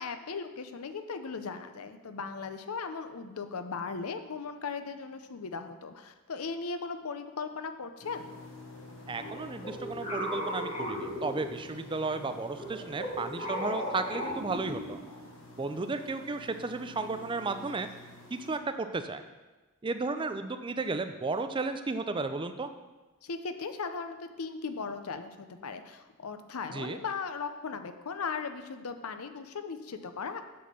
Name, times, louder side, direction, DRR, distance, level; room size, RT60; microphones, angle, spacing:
voice 1, 0.0-8.3 23.2-30.4, left 5 dB, 90° left, 9 dB, 0.6 m, -38 dB
sound 1, 8.0-18.6, left 1 dB, 65° left, 1.2 m, -48 dB
voice 2, 9.1-15.0 15.6-17.9 18.3-19.2 19.8-22.7 26.7-27.0, right 3 dB, 25° right, 8 dB, 0.4 m, -34 dB
sound 2, 9.2-11.9 12.5-15.2, equal, 35° left, 2.3 m, -37 dB
7.6 x 4.3 x 6.8 m, 1.2 s
head